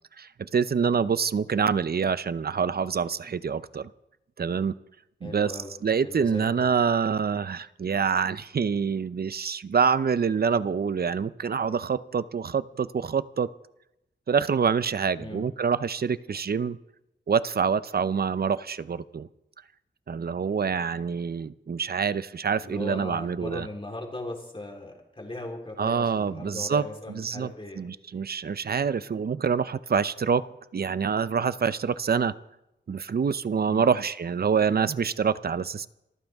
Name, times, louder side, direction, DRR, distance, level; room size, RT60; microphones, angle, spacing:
voice 1, 0.2-3.9 4.4-4.7 5.2-5.5 5.8-13.5 14.3-16.8 17.3-19.3 20.1-23.7 25.8-30.4 30.7-32.3 32.9-35.9, right 6 dB, 55° right, 15 dB, 0.6 m, -26 dB
voice 2, 5.2-5.7 6.0-6.7 15.2-15.4 22.6-27.8 33.7-33.9, left 1 dB, 25° left, 0 dB, 3.9 m, -38 dB
26.5 x 14.5 x 3.6 m, 0.86 s
wide cardioid pair, 105°, 19 cm